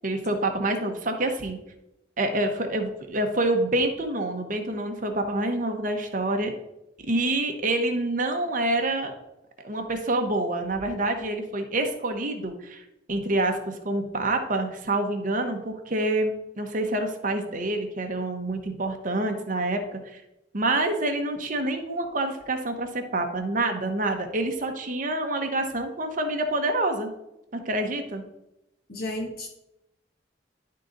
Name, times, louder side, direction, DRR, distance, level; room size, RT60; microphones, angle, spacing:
voice 1, 0.0-1.6 2.2-6.5 7.0-9.1 9.6-12.8 13.1-20.2 20.5-27.1 27.5-28.2, right 2 dB, 45° right, 5 dB, 1.0 m, -27 dB
voice 2, 28.9-29.6, left 1 dB, 55° left, 0 dB, 1.1 m, -33 dB
11.0 x 3.8 x 3.9 m, 0.89 s
head